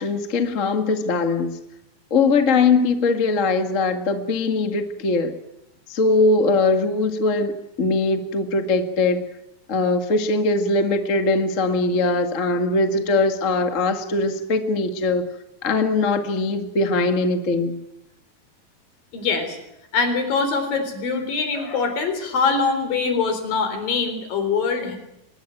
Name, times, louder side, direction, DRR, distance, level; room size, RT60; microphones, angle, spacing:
voice 1, 0.0-1.5 2.1-5.3 5.9-9.2 9.7-15.2 15.6-17.8, left 3 dB, 30° left, 6 dB, 1.4 m, -21 dB
voice 2, 19.1-19.6 19.9-25.0, left 4 dB, 65° left, 8 dB, 5.5 m, -23 dB
24.5 x 20.0 x 9.1 m, 0.85 s
omnidirectional pair, 4.3 m